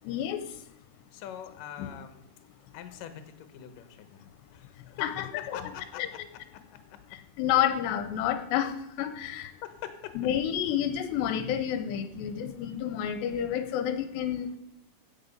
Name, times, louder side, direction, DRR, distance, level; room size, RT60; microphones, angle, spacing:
voice 1, 0.1-0.4 1.8-1.9 5.0-5.6 6.0-6.1 7.4-8.7 9.0-9.5 10.2-14.6, left 10 dB, 85° left, 9 dB, 2.9 m, -29 dB
voice 2, 1.1-2.2 2.7-5.1 5.4-7.0 9.6-10.2, left 10 dB, 65° left, 8 dB, 2.3 m, -44 dB
16.5 x 7.8 x 5.4 m, 0.83 s
omnidirectional pair, 5.0 m